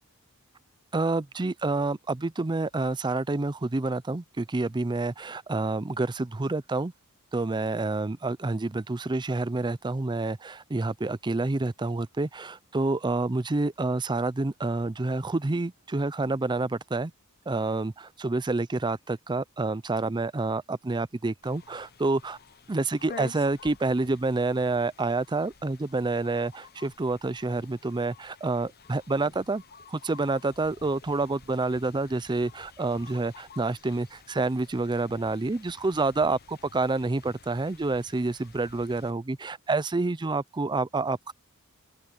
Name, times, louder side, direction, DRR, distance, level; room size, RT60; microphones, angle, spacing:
voice 1, 0.9-6.9 7.3-17.1 17.5-22.4 22.7-29.6 29.9-41.3, right 3 dB, 20° right, 0.5 m, -28 dB
sound 1, 21.4-39.1, left 4 dB, 45° left, 1.1 m, -51 dB
open air
head